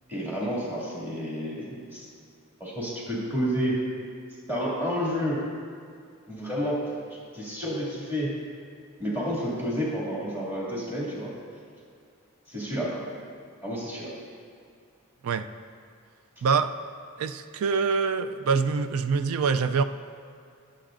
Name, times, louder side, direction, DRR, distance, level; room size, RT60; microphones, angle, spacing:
voice 1, 0.1-2.1 2.6-3.8 4.5-5.4 6.3-7.0 7.3-8.3 9.0-11.3 12.5-13.1 13.6-14.1, equal, 10° right, -6 dB, 2.3 m, -30 dB
voice 2, 16.4-16.7 17.2-19.8, right 5 dB, 85° right, 10 dB, 0.4 m, -25 dB
19.0 x 7.5 x 2.5 m, 2.2 s
head